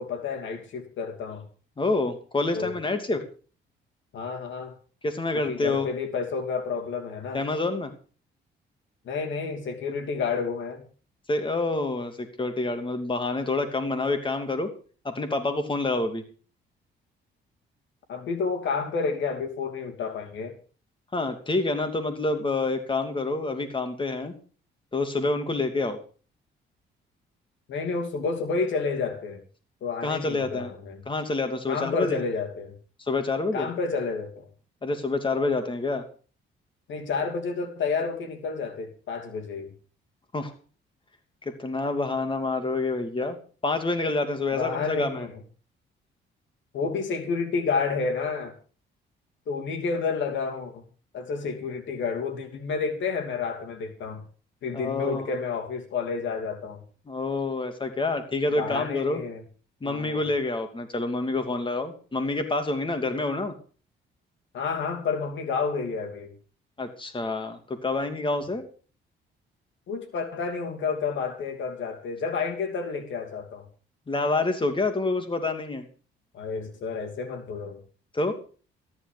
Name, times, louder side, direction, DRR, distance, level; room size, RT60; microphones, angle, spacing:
voice 1, 0.0-1.5 2.5-2.7 4.1-4.7 5.5-7.4 9.0-10.8 18.1-20.6 27.7-29.4 29.8-31.0 31.7-32.7 33.5-34.5 36.9-39.7 44.5-45.4 46.7-48.5 49.5-50.9 51.1-54.2 54.6-56.8 58.6-59.4 59.8-60.2 64.5-66.3 69.9-73.7 76.3-77.8, left 5 dB, 70° left, 2.9 m, -30 dB
voice 2, 1.8-3.2 5.0-5.9 7.3-7.9 11.3-14.7 15.0-16.2 21.1-24.3 24.9-26.0 30.0-30.7 31.1-32.2 33.0-33.7 34.8-36.0 40.3-40.5 41.4-43.4 43.6-45.3 54.7-55.4 57.1-59.2 59.8-63.5 66.8-68.6 74.1-75.8 78.1-78.3, left 2 dB, 25° left, 2.8 m, -27 dB
14.0 x 11.0 x 5.2 m
cardioid pair, 90°, 20 cm